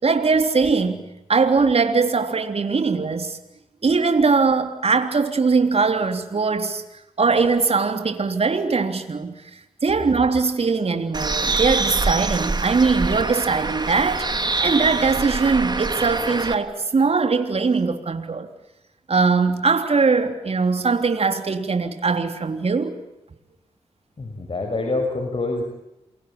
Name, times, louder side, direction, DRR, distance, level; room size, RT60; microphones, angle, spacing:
voice 1, 0.0-3.4 3.8-6.8 7.2-9.3 9.8-18.5 19.1-23.0, right 4 dB, 55° right, 3.4 m, -21 dB
Bird, 11.1-16.5, right 3 dB, 35° right, 2.8 m, -25 dB
voice 2, 24.2-25.6, left 2 dB, 50° left, 6.1 m, -26 dB
28.5 x 23.5 x 8.5 m
cardioid pair, 50°, 12 cm